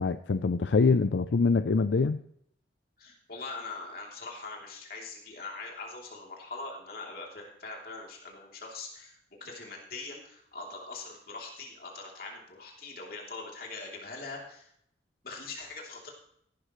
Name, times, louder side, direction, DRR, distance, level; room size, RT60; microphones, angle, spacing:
voice 1, 0.0-2.2, left 4 dB, 80° left, 11 dB, 0.5 m, -24 dB
voice 2, 3.0-14.7 15.2-16.1, left 3 dB, 55° left, -1 dB, 3.2 m, -42 dB
16.5 x 11.5 x 3.2 m, 0.69 s
head